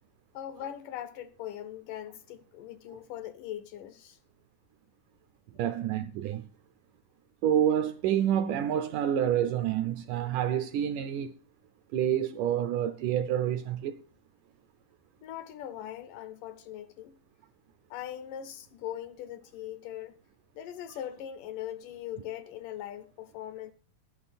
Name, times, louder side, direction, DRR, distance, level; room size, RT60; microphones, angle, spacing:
voice 1, 0.3-4.2 15.2-17.1 17.9-20.2 20.6-23.7, left 11 dB, 80° left, 2.0 m, -40 dB
voice 2, 5.6-6.5 7.4-11.3 11.9-14.0, right 10 dB, 80° right, 1.9 m, -28 dB
11.0 x 10.5 x 4.1 m
omnidirectional pair, 4.2 m